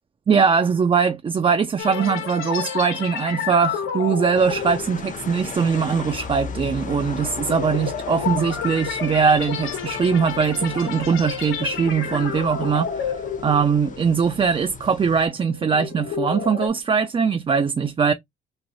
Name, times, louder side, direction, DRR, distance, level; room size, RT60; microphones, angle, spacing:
voice 1, 0.3-13.1 13.4-18.1, right 6 dB, 25° right, 0.4 m, -21 dB
sound 1, 1.8-14.3 14.6-14.9 15.4-16.7, left 7 dB, 85° left, 1.1 m, -30 dB
sound 2, 4.3-15.3, left 5 dB, 40° left, 0.8 m, -37 dB
3.1 x 2.1 x 3.9 m
cardioid pair, 90°, 20 cm